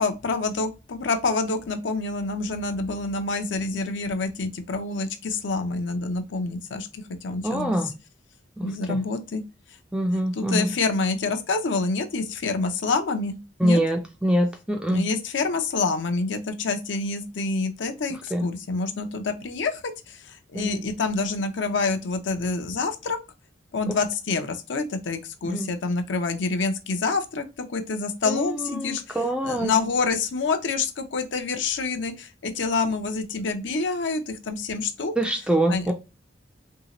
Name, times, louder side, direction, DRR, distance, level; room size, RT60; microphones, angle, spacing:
voice 1, 0.0-7.8 8.6-9.4 10.3-13.4 13.6-13.8 14.9-19.8 20.1-23.2 23.7-29.2 29.4-35.1 35.7-35.9, left 4 dB, 70° left, 0.5 m, -27 dB
voice 2, 7.4-7.9 8.6-9.0 9.9-10.7 13.6-15.0 18.3-18.5 20.5-20.8 23.9-24.0 25.4-25.7 28.3-29.7 35.2-35.9, right 1 dB, 5° right, 0.3 m, -25 dB
2.8 x 2.7 x 2.9 m
head